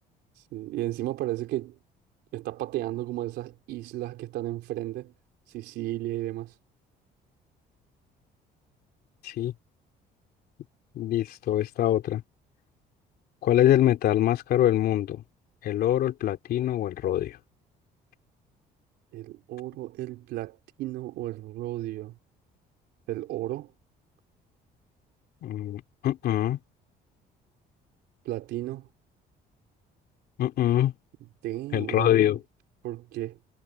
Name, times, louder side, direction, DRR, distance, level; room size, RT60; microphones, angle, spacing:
voice 1, 0.5-1.8 2.3-5.1 5.5-6.5 19.1-22.2 23.1-23.7 28.3-28.9 31.4-32.4 32.8-33.4, right 16 dB, 85° right, 3.6 m, -34 dB
voice 2, 10.9-12.2 13.4-15.2 15.6-17.4 25.4-26.6 30.4-30.9 31.7-32.4, left 12 dB, 65° left, 3.3 m, -24 dB
cardioid pair, 110°, 17 cm